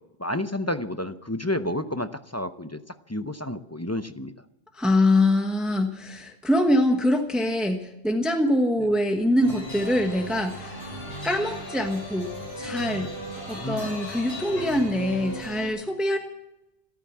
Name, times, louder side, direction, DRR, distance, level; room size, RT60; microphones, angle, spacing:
voice 1, 0.2-4.3 13.5-14.0, left 1 dB, 20° left, 10 dB, 0.6 m, -30 dB
voice 2, 4.7-10.8 11.2-12.3 12.6-13.1 13.5-16.2, left 1 dB, ahead, 4 dB, 1.2 m, -24 dB
sound 1, 9.4-15.7, equal, 65° left, 6.5 m, -36 dB
14.5 x 13.5 x 7.3 m, 0.91 s
omnidirectional pair, 1.1 m